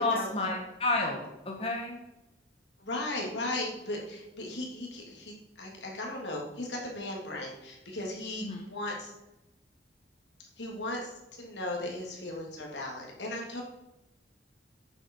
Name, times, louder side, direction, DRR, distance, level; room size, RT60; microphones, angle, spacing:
voice 1, 0.0-1.9 8.4-8.6, left 2 dB, 35° left, 1 dB, 1.6 m, -31 dB
voice 2, 2.8-9.1 10.6-11.1 11.4-13.6, left 1 dB, 80° left, -1 dB, 3.0 m, -36 dB
11.5 x 9.0 x 4.8 m, 0.94 s
head